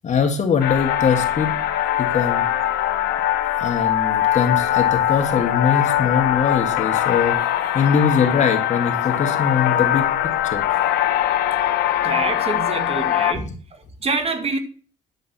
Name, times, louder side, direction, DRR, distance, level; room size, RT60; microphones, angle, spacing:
voice 1, 0.0-1.6 2.0-2.4 3.6-7.4 7.7-10.6 13.3-13.5, left 6 dB, 50° left, 2.1 m, -22 dB
sound 1, 0.6-13.3, left 12 dB, 80° left, 1.1 m, -21 dB
voice 2, 12.0-14.6, right 4 dB, 40° right, 1.9 m, -26 dB
10.0 x 7.7 x 4.3 m
supercardioid pair, 75°, 15 cm